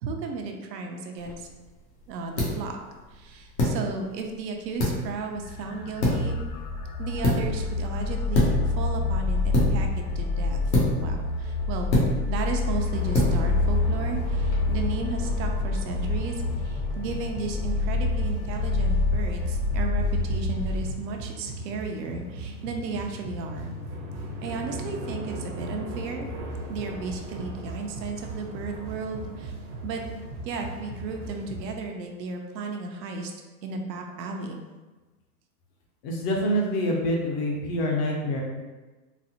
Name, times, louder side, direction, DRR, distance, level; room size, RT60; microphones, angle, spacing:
voice 1, 0.0-1.5 2.1-2.8 3.1-6.4 7.0-10.6 11.0-11.9 12.3-23.7 24.4-26.3 26.7-29.5 29.8-33.3 33.6-34.6, right 4 dB, 80° right, 3 dB, 0.7 m, -34 dB
sound 1, 1.2-14.6, left 1 dB, 90° left, 1.2 m, -29 dB
sound 2, 5.3-20.9, left 3 dB, 70° left, 0.7 m, -27 dB
sound 3, 12.9-31.7, right 1 dB, 40° right, 0.6 m, -38 dB
voice 2, 36.0-38.4, equal, 30° left, -1 dB, 0.4 m, -26 dB
4.0 x 2.0 x 2.7 m, 1.2 s
hypercardioid pair, 130°, 50 cm